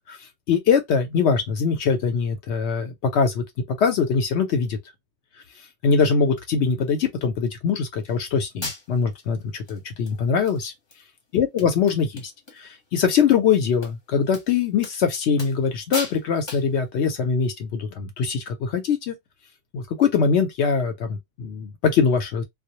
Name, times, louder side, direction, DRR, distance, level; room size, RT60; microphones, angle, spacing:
voice 1, 0.1-3.4 3.8-4.8 5.8-10.7 11.3-19.2 19.7-22.4, left 6 dB, 70° left, 0.8 m, -22 dB
sound 1, 8.1-8.2 8.6-9.1 9.7-9.8 10.1-10.6 10.9-11.0 11.3-11.4 11.6-12.6 12.9-13.1 13.8-13.9 14.3-14.4 14.8-15.0 15.4-15.7 15.9-16.2 16.5-16.7, left 2 dB, 25° left, 0.8 m, -35 dB
2.2 x 2.0 x 2.8 m
omnidirectional pair, 1.3 m